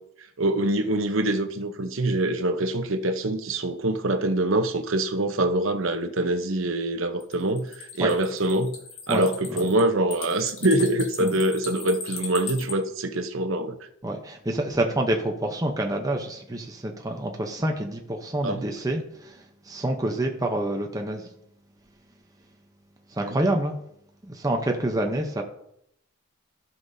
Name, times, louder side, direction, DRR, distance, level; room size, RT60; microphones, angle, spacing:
voice 1, 0.4-8.8 9.1-13.8 18.4-18.7 23.2-23.4, right 1 dB, 65° right, 0.8 m, -24 dB
sound 1, 7.2-12.7, left 5 dB, 75° left, 1.5 m, -38 dB
voice 2, 14.0-19.4 19.7-21.3 23.1-23.8 24.2-25.4, right 1 dB, 15° right, 0.8 m, -27 dB
15.5 x 5.5 x 2.7 m
head